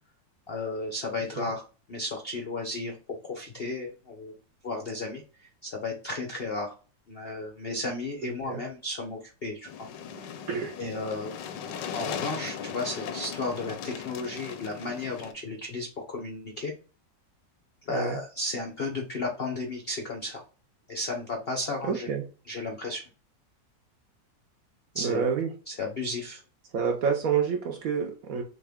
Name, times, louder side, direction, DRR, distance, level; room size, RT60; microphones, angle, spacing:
voice 1, 0.5-3.0 3.2-4.3 4.6-6.8 7.1-9.9 10.2-10.3 10.8-11.3 11.9-16.7 17.9-20.4 20.9-22.1 22.5-23.0 24.9-25.3 25.7-26.4, left 2 dB, 60° left, 3 dB, 0.6 m, -34 dB
voice 2, 8.2-8.6 10.5-10.7 17.9-18.2 21.8-22.3 24.9-25.5 26.7-28.4, right 6 dB, 65° right, 4 dB, 0.9 m, -28 dB
sound 1, 9.7-15.3, left 7 dB, 80° left, 1.3 m, -38 dB
6.4 x 2.4 x 3.4 m, 0.36 s
omnidirectional pair, 2.0 m